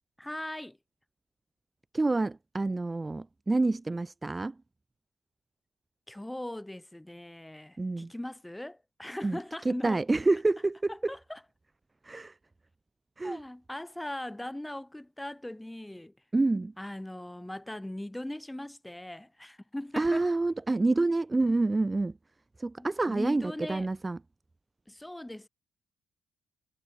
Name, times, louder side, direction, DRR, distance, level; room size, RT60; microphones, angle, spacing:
voice 1, 0.2-0.8 6.1-10.0 11.1-11.4 13.2-16.1 16.8-20.2 22.8-23.9 24.9-25.5, left 1 dB, 5° left, 8.0 m, -39 dB
voice 2, 1.9-4.6 7.8-8.1 9.2-9.4 9.7-11.1 12.0-12.4 13.2-13.4 16.3-16.7 20.0-22.2 22.6-24.2, right 2 dB, 20° right, 1.9 m, -28 dB
cardioid pair, 90°, 0 cm